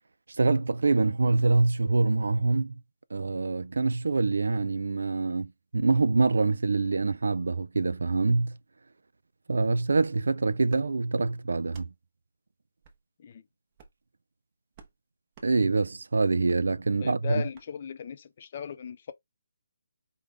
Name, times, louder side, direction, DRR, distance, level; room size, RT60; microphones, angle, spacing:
voice 1, 0.4-2.7 3.1-8.6 9.5-11.9 15.4-17.4, right 3 dB, 85° right, 0.4 m, -25 dB
sound 1, 10.7-10.9 11.6-11.9 12.8-13.0 13.7-14.0 14.7-14.9 15.3-15.5 16.4-16.6 17.5-17.7, right 5 dB, 20° right, 0.7 m, -53 dB
voice 2, 17.0-19.1, left 8 dB, 35° left, 0.5 m, -37 dB
4.9 x 2.2 x 3.4 m
hypercardioid pair, 170°, 0 cm